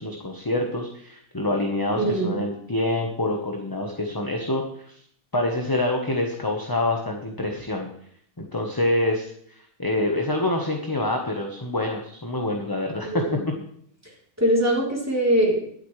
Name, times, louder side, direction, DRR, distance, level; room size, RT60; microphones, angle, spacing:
voice 1, 0.0-5.0 5.3-7.9 8.4-13.2, left 1 dB, 15° left, 1 dB, 1.0 m, -26 dB
voice 2, 2.0-2.4 13.0-13.5 14.4-15.6, right 1 dB, 10° right, -3 dB, 3.5 m, -22 dB
22.5 x 8.0 x 3.3 m, 0.65 s
omnidirectional pair, 1.7 m